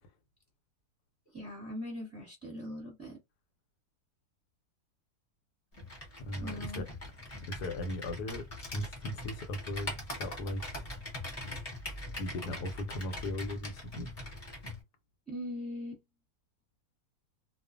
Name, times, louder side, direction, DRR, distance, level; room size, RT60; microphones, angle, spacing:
voice 1, 1.3-3.2 6.4-6.8 15.3-16.0, left 1 dB, 10° right, 0.9 m, -41 dB
Computer keyboard, 5.7-14.8, left 1 dB, 30° left, 0.7 m, -42 dB
voice 2, 6.2-6.9 7.5-8.5 8.7-9.9 10.2-10.8 12.2-14.4, left 1 dB, 80° left, 1.1 m, -38 dB
2.4 x 2.3 x 2.4 m
omnidirectional pair, 1.7 m